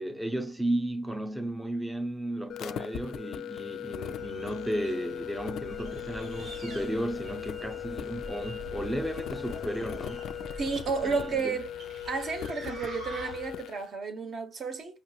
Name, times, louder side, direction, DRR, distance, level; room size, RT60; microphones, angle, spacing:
voice 1, 0.0-10.2 11.0-11.6, right 1 dB, 5° right, 0.5 m, -34 dB
sound 1, 2.5-13.8, left 11 dB, 85° left, 0.3 m, -39 dB
sound 2, 3.8-13.7, right 1 dB, 85° right, 1.8 m, -48 dB
sound 3, 5.5-11.5, right 1 dB, 25° right, 1.1 m, -46 dB
voice 2, 10.6-11.8 12.0-15.0, right 4 dB, 60° right, 1.0 m, -32 dB
5.2 x 2.8 x 2.4 m
cardioid pair, 115°, 0 cm